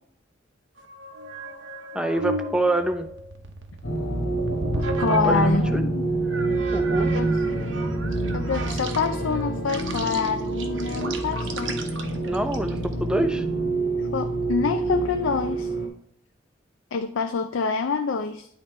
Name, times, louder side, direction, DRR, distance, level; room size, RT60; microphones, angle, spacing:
sound 1, 0.8-5.7 6.3-12.9, right 2 dB, 80° right, 0.9 m, -35 dB
voice 1, 1.9-3.1 4.7-5.8 6.7-7.1 12.3-13.4, right 1 dB, 5° right, 7 dB, 0.5 m, -26 dB
sound 2, 3.8-15.9, right 2 dB, 70° left, 1.4 m, -26 dB
voice 2, 5.0-6.1 7.1-7.3 8.3-11.8 14.1-15.7 16.9-18.5, left 5 dB, 85° left, 7 dB, 0.5 m, -26 dB
10.0 x 3.4 x 4.2 m, 0.68 s
head